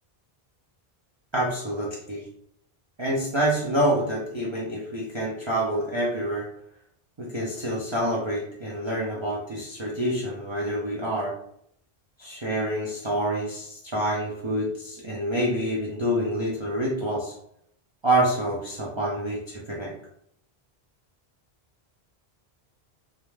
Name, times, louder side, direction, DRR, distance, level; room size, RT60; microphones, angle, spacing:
voice 1, 1.3-2.3 3.0-6.5 7.2-11.3 12.2-17.3 18.0-19.9, right 1 dB, 45° right, -5 dB, 0.4 m, -27 dB
2.3 x 2.1 x 3.1 m, 0.71 s
omnidirectional pair, 1.0 m